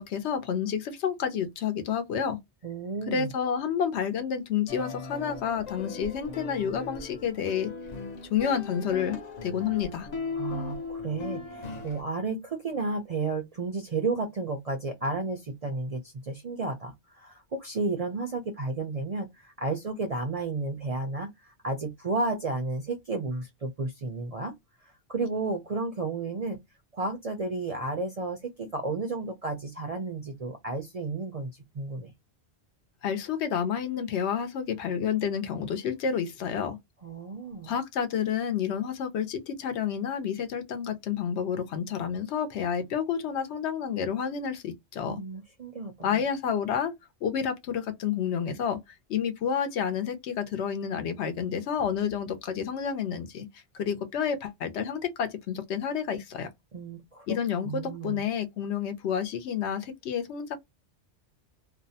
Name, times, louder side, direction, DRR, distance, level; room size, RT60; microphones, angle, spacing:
voice 1, 0.0-2.4 3.1-7.7 8.3-10.1 33.0-36.8 37.6-45.2 46.0-46.9 47.2-48.8 49.1-53.5 53.7-56.5 57.3-60.6, left 7 dB, 75° left, 0.9 m, -29 dB
voice 2, 2.6-3.3 10.4-24.5 24.8-26.6 26.9-32.1 37.0-37.7 45.1-46.2 56.7-57.4 57.6-58.2, right 3 dB, 50° right, 0.4 m, -32 dB
sound 1, 4.7-12.0, left 4 dB, 50° left, 0.6 m, -38 dB
2.6 x 2.0 x 2.6 m
omnidirectional pair, 1.2 m